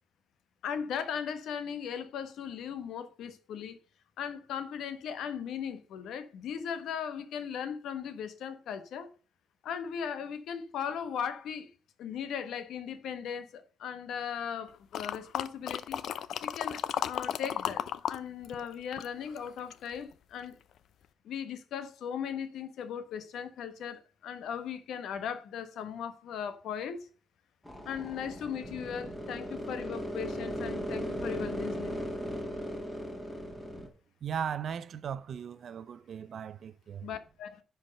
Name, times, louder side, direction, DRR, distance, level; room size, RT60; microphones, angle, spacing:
voice 1, 0.6-3.8 4.2-9.1 9.6-11.7 12.0-16.0 16.4-20.6 21.2-27.1 27.9-32.0 37.0-37.6, left 8 dB, 85° left, 1.2 m, -38 dB
sound 1, 14.9-18.2 18.4-19.9 20.4-20.5, left 9 dB, 70° left, 0.5 m, -34 dB
sound 2, 27.6-33.9, equal, 5° left, 1.8 m, -37 dB
voice 2, 34.2-37.1, right 8 dB, 50° right, 0.5 m, -37 dB
10.5 x 4.6 x 5.2 m
wide cardioid pair, 165°, 0 cm